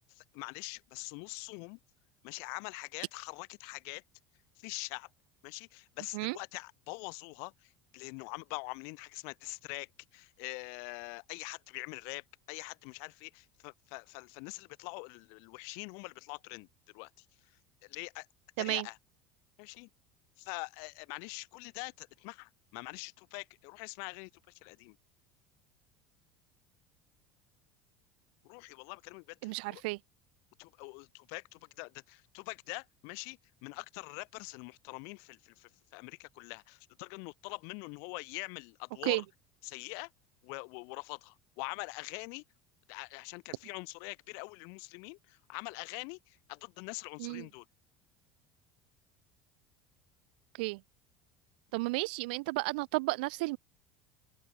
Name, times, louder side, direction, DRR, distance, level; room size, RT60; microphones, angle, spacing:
voice 1, 0.1-1.8 2.2-4.0 4.6-5.1 5.4-16.7 16.9-17.2 17.8-18.3 18.6-19.0 19.6-19.9 20.4-25.0 28.4-29.8 30.6-39.2 39.6-40.1 40.4-42.4 42.9-47.6, left 38 dB, 70° left, 2.5 m, -44 dB
voice 2, 29.4-30.0 39.0-39.2 47.2-47.5 50.6-50.8 51.7-53.6, right 25 dB, 85° right, 0.8 m, -32 dB
cardioid pair, 145°, 5 cm